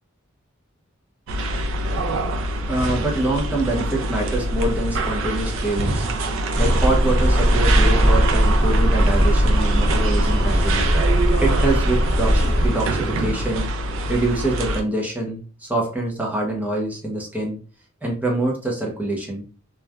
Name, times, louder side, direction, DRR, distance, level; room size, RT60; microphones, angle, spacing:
sound 1, 1.3-14.8, right 2 dB, 65° right, 0.4 m, -25 dB
voice 1, 2.7-6.1 6.5-10.9 11.4-13.7 14.1-17.6 18.0-19.4, right 2 dB, 10° right, -1 dB, 0.7 m, -25 dB
sound 2, 6.5-12.7, equal, 55° left, 0.8 m, -19 dB
3.0 x 2.2 x 2.3 m, 0.39 s
head